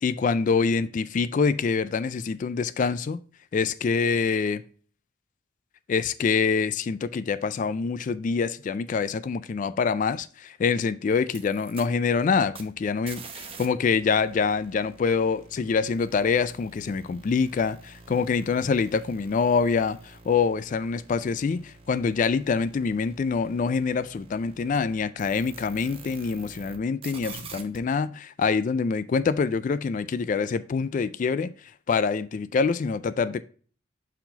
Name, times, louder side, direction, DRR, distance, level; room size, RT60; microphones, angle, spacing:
voice 1, 0.0-3.2 3.5-4.6 5.9-13.2 13.6-31.5 31.9-33.4, left 5 dB, 45° left, 0.3 m, -25 dB
sound 1, 11.2-13.7 13.9-26.8 27.0-27.8, right 4 dB, 30° right, 0.8 m, -47 dB
5.8 x 4.7 x 3.9 m
head